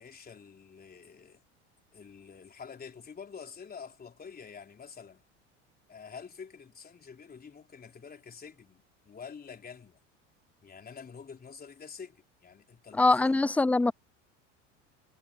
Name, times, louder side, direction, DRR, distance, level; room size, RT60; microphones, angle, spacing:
voice 1, 0.0-1.4 1.9-5.2 5.9-10.0 10.6-13.4, left 6 dB, 25° left, 3.7 m, -47 dB
voice 2, 12.9-13.9, left 3 dB, 5° left, 0.4 m, -23 dB
hypercardioid pair, 85°, 36 cm